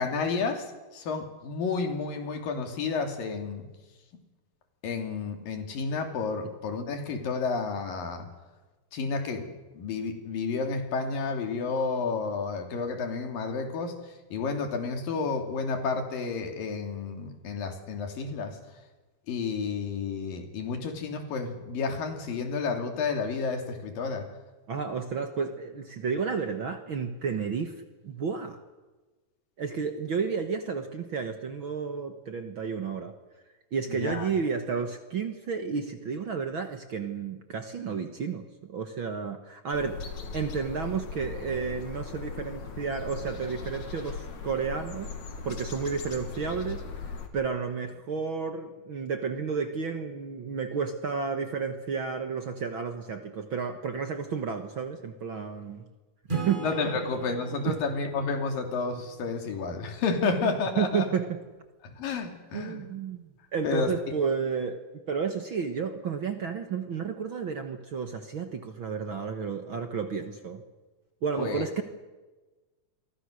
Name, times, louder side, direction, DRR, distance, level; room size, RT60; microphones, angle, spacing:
voice 1, 0.0-3.7 4.8-8.3 8.9-14.0 14.3-18.6 19.3-24.3 33.9-34.3 56.6-61.1 61.8-62.8 63.6-63.9 71.4-71.6, left 4 dB, 90° left, 5 dB, 4.5 m, -31 dB
voice 2, 24.7-28.6 29.6-33.1 33.7-40.0 40.3-45.1 45.5-46.8 47.3-55.9 56.3-56.7 57.7-57.8 59.7-59.8 60.2-61.4 62.5-70.6 71.2-71.8, right 6 dB, 50° right, 7 dB, 1.6 m, -32 dB
sound 1, 39.7-47.3, left 5 dB, 60° left, 3.6 m, -39 dB
Acoustic guitar / Strum, 56.3-59.8, right 3 dB, 15° right, 6.0 m, -39 dB
28.5 x 23.5 x 6.5 m, 1.2 s
omnidirectional pair, 3.9 m